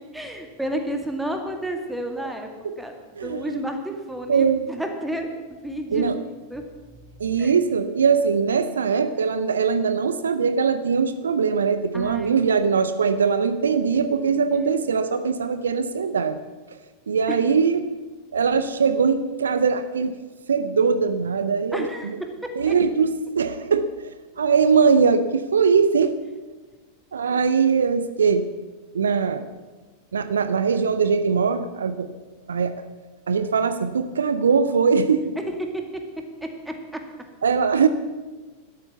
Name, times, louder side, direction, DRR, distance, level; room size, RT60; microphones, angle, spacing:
voice 1, 0.1-2.5 2.8-6.6 7.4-7.5 11.9-12.3 13.9-14.7 17.3-17.4 21.7-22.8 27.3-27.4 35.6-36.0 36.4-37.0, right 1 dB, 5° right, 4 dB, 2.1 m, -32 dB
voice 2, 3.2-3.6 4.3-4.7 5.9-6.2 7.2-16.4 17.1-17.9 18.3-20.2 20.5-21.9 22.6-23.9 24.4-26.1 27.1-28.5 28.9-29.5 30.1-32.1 32.5-32.7 33.3-35.3 37.4-37.9, right 5 dB, 70° right, 12 dB, 0.7 m, -21 dB
12.5 x 12.5 x 7.0 m, 1.2 s
figure-of-eight pair, 90°, 0 cm